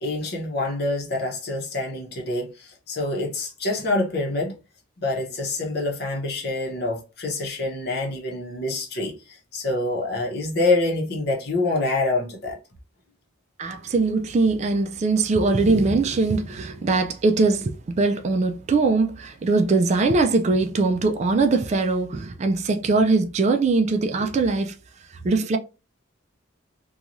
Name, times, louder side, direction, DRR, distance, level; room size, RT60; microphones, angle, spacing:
voice 1, 0.0-4.6 5.0-12.6, left 2 dB, 55° left, 0.8 m, -26 dB
voice 2, 13.6-24.7 25.2-25.6, right 3 dB, 35° right, 0.3 m, -21 dB
3.0 x 2.3 x 2.5 m
head